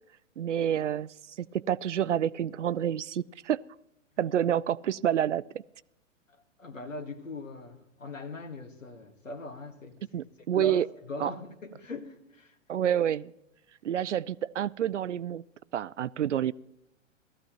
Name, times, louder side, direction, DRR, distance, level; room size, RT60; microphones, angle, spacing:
voice 1, 0.4-1.1 1.4-3.6 4.2-5.6 10.1-10.9 11.2-11.3 12.7-13.3 13.8-15.4 15.7-16.5, right 10 dB, 65° right, 21 dB, 0.5 m, -28 dB
voice 2, 6.6-10.0 10.6-12.5, left 2 dB, 75° left, 8 dB, 1.8 m, -40 dB
17.5 x 14.0 x 2.9 m, 0.85 s
figure-of-eight pair, 110°, 39 cm